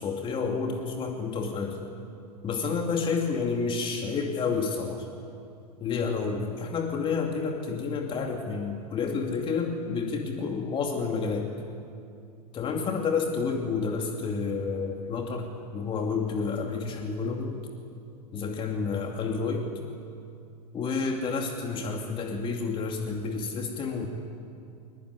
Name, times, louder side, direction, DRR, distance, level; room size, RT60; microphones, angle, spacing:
voice 1, 0.0-1.8 2.4-5.1 5.8-11.5 12.5-17.6 18.3-19.7 20.7-24.1, left 5 dB, 25° left, 3 dB, 2.5 m, -30 dB
22.5 x 21.0 x 9.6 m, 2.5 s
figure-of-eight pair, 100°, 21 cm